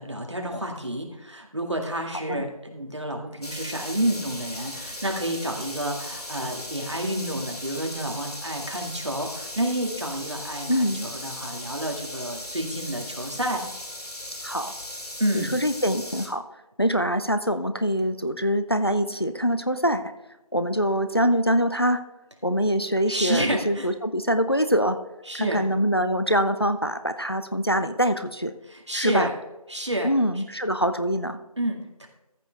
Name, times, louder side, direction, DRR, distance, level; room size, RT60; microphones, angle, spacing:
voice 1, 0.0-13.6 15.2-15.5 23.1-23.9 25.3-25.6 28.7-29.3 29.7-30.1 31.6-32.1, right 1 dB, 50° right, 2 dB, 2.0 m, -29 dB
sound 1, 3.4-16.3, left 1 dB, 85° left, 2.5 m, -37 dB
voice 2, 10.7-11.1 14.4-14.7 15.3-16.4 16.8-20.1 20.5-22.0 22.4-25.0 25.3-28.5 28.9-29.3 30.0-31.4, equal, 40° left, 9 dB, 0.5 m, -24 dB
14.0 x 6.8 x 3.4 m, 1.0 s
figure-of-eight pair, 180°, 19 cm